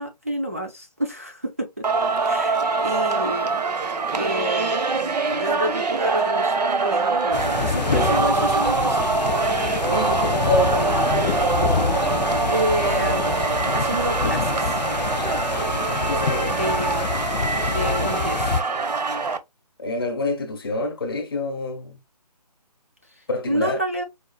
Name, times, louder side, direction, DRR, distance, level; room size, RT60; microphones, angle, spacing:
voice 1, 0.0-1.8 2.2-3.6 4.1-9.2 12.5-14.8 16.5-17.1 17.7-18.5 23.5-24.0, equal, 20° right, 0.4 m, -29 dB
Singing, 1.8-19.4, right 4 dB, 75° right, 0.8 m, -24 dB
sound 1, 7.3-18.6, left 6 dB, 80° left, 0.5 m, -26 dB
voice 2, 9.8-10.9 16.1-16.6 19.8-22.0 23.3-23.8, left 2 dB, 35° left, 0.8 m, -26 dB
4.7 x 2.3 x 2.3 m
hypercardioid pair, 175°, 21 cm